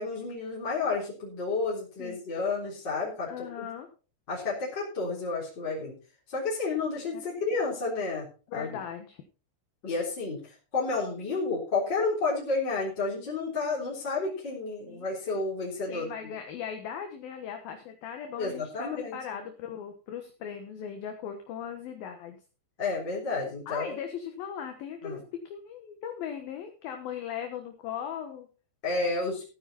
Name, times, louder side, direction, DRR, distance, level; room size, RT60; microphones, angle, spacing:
voice 1, 0.0-3.7 4.3-5.9 6.3-8.3 8.5-8.8 9.8-10.4 10.7-16.1 18.4-19.2 22.8-23.9 25.0-25.2 28.8-29.4, left 3 dB, 25° left, -6 dB, 4.0 m, -31 dB
voice 2, 3.2-3.9 7.1-7.2 8.5-9.2 14.9-15.1 15.9-22.4 23.7-28.5, left 8 dB, 65° left, 5 dB, 2.7 m, -38 dB
15.0 x 9.8 x 4.2 m, 0.35 s
omnidirectional pair, 5.1 m